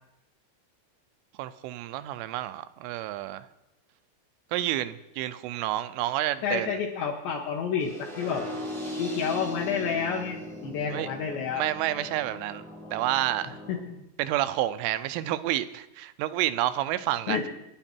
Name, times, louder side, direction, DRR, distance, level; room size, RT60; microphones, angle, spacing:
voice 1, 1.4-3.5 4.5-6.8 10.9-11.1 11.5-12.6 12.9-13.6 14.2-17.4, right 14 dB, 80° right, 13 dB, 3.1 m, -29 dB
voice 2, 6.4-8.5 9.0-11.7 13.7-14.0 17.3-17.5, left 6 dB, 70° left, -1 dB, 3.1 m, -30 dB
sound 1, 7.8-13.8, left 1 dB, 20° right, 0.8 m, -38 dB
26.0 x 11.0 x 4.5 m, 0.91 s
omnidirectional pair, 5.9 m